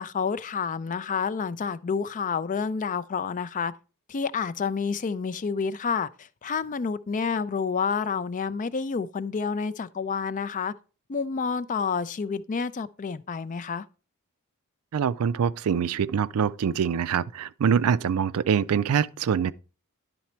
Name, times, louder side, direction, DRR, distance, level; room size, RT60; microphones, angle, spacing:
voice 1, 0.0-3.7 4.1-6.1 6.4-10.7 11.1-13.8, left 5 dB, 35° left, 0.4 m, -29 dB
voice 2, 14.9-19.5, right 7 dB, 70° right, 0.4 m, -24 dB
10.5 x 4.1 x 4.4 m
head